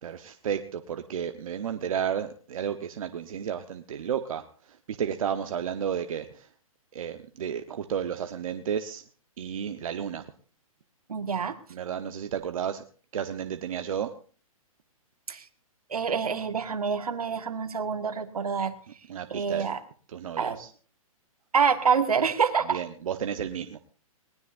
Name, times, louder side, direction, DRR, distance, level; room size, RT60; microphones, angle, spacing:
voice 1, 0.0-6.5 6.9-9.0 9.4-10.3 11.7-12.8 13.1-14.1 19.1-19.7 20.1-20.7 22.7-23.8, right 8 dB, 70° right, 8 dB, 1.1 m, -32 dB
voice 2, 11.1-11.6 15.3-15.5 15.9-18.7 19.3-19.8 20.4-20.6 21.5-22.8, right 6 dB, 90° right, 9 dB, 1.7 m, -26 dB
20.5 x 19.0 x 2.6 m, 0.42 s
hypercardioid pair, 140°, 19 cm